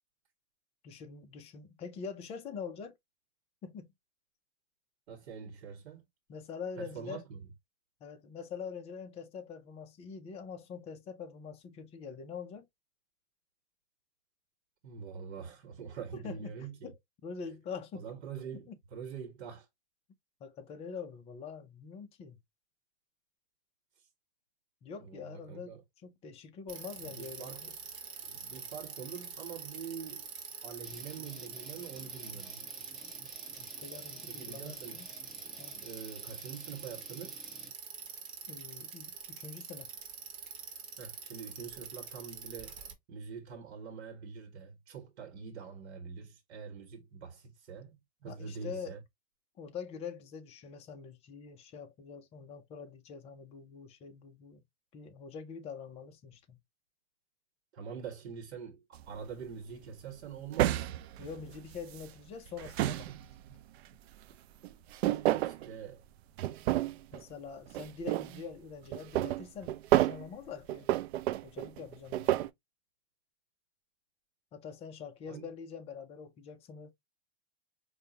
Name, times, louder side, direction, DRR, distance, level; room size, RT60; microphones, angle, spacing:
voice 1, 0.8-3.0 3.6-3.9 6.3-7.2 8.0-12.7 16.2-16.5 16.8-17.0 17.2-18.0 18.7-18.8 20.4-22.4 24.8-27.7 33.6-35.1 35.6-35.8 38.5-39.9 48.3-48.9 49.6-54.6 54.9-56.6 61.2-63.3 67.1-70.9 71.4-72.5 74.5-76.9, left 6 dB, 20° left, 0.5 m, -44 dB
voice 2, 5.1-6.0 6.8-7.5 14.8-16.9 17.9-19.7 24.0-24.1 25.0-25.8 27.0-27.7 28.2-30.3 30.6-32.6 34.3-35.0 35.8-37.4 41.0-42.8 43.1-49.0 57.7-60.9 65.4-66.0 75.3-75.5, right 6 dB, 85° right, 1.1 m, -45 dB
Bicycle, 26.7-42.9, right 6 dB, 35° right, 1.1 m, -45 dB
sound 1, 30.8-37.7, equal, ahead, 1.2 m, -55 dB
sound 2, 58.9-59.2 60.5-62.1 62.5-63.5 64.6-65.7 66.4-67.2 67.7-68.4 68.9-70.3 70.7-72.5, right 14 dB, 70° right, 0.5 m, -30 dB
4.9 x 2.2 x 2.7 m
supercardioid pair, 150°, 33 cm